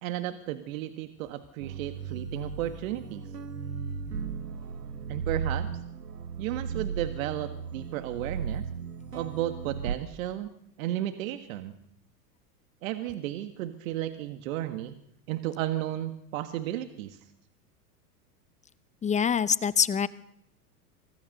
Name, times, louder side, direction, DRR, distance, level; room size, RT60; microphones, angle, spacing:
voice 1, 0.0-3.2 4.1-4.2 5.1-5.7 6.4-8.7 9.1-10.5 10.8-11.8 12.8-14.9 15.3-17.2, right 13 dB, 60° right, 9 dB, 1.8 m, -33 dB
sound 1, 1.6-10.0, right 6 dB, 90° right, 1.7 m, -36 dB
voice 2, 19.0-20.1, left 7 dB, 15° left, 17 dB, 0.7 m, -24 dB
25.0 x 17.0 x 6.7 m, 0.76 s
hypercardioid pair, 100°, 46 cm